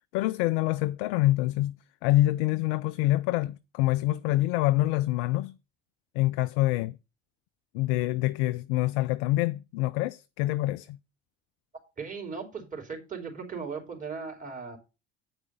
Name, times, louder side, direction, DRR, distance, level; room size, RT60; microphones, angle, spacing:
voice 1, 0.1-1.8 2.0-5.5 6.2-7.0 7.7-11.0, left 17 dB, 55° left, 0.4 m, -26 dB
voice 2, 12.0-14.8, right 5 dB, 25° right, 3.4 m, -37 dB
8.8 x 4.8 x 6.7 m
figure-of-eight pair, 60°, 34 cm